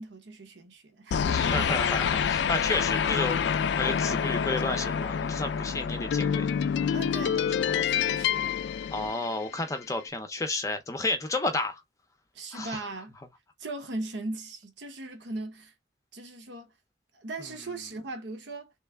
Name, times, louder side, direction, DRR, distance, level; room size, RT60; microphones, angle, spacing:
voice 1, 0.0-1.7 6.9-7.4 7.8-8.6 12.3-13.2 13.6-15.7 16.1-16.7 17.1-18.7, right 2 dB, 75° right, 0.9 m, -38 dB
sound 1, 1.1-9.7, left 7 dB, 70° left, 0.3 m, -27 dB
voice 2, 1.3-6.5 7.3-7.9 8.9-11.8 12.5-12.8, left 2 dB, 15° left, 0.5 m, -32 dB
3.2 x 3.1 x 3.4 m
head